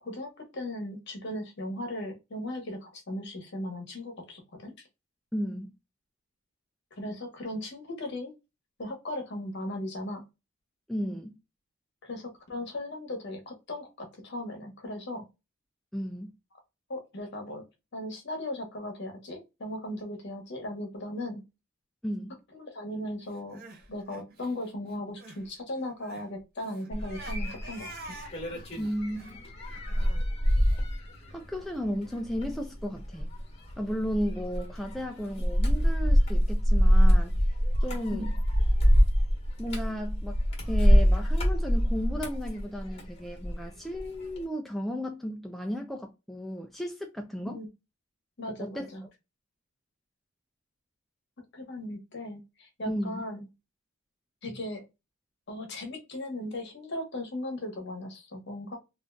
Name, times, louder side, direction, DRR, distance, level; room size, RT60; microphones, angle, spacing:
voice 1, 0.0-4.7 7.0-8.3 8.8-10.2 12.0-15.2 16.9-17.6 17.9-21.4 22.6-23.6 23.9-28.2 38.1-38.3 47.4-47.7 48.4-49.0 51.5-53.5 54.4-54.8 55.5-58.8, left 1 dB, 55° left, 1.0 m, -37 dB
voice 2, 5.3-5.7 10.9-11.4 15.9-16.3 22.0-22.4 28.8-29.4 31.3-33.3 33.8-37.4 37.8-38.3 39.6-40.4 40.7-47.6 48.6-48.9 52.9-53.2, equal, ahead, 0.3 m, -34 dB
Crying sobbing, 23.3-25.5 25.7-30.8, right 3 dB, 45° right, 0.7 m, -48 dB
sound 1, 26.9-43.6 44.0-44.4, equal, 30° left, 1.3 m, -25 dB
3.6 x 2.5 x 2.2 m
head